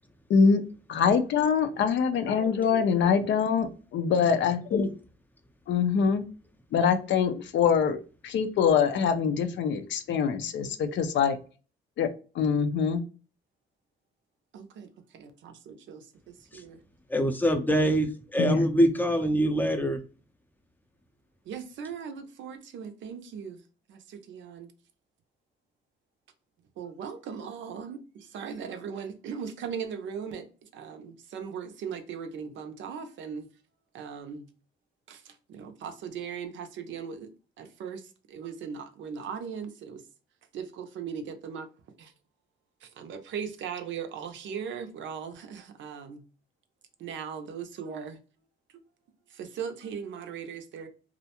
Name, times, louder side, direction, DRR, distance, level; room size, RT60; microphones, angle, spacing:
voice 1, 0.3-0.6 0.9-4.9 5.7-6.2 6.7-11.4 12.0-12.1 12.3-13.0 18.4-18.7, left 6 dB, 65° left, 0.5 m, -24 dB
voice 2, 14.5-16.8 21.5-23.6 23.9-24.7 26.8-33.5 33.9-34.5 35.1-37.3 37.6-40.0 40.5-41.7 42.0-42.1 42.8-46.2 47.0-48.2 49.3-50.9, right 7 dB, 70° right, 0.5 m, -39 dB
voice 3, 17.1-20.0, equal, 10° left, 0.5 m, -24 dB
2.4 x 2.1 x 2.8 m
cardioid pair, 90°, 20 cm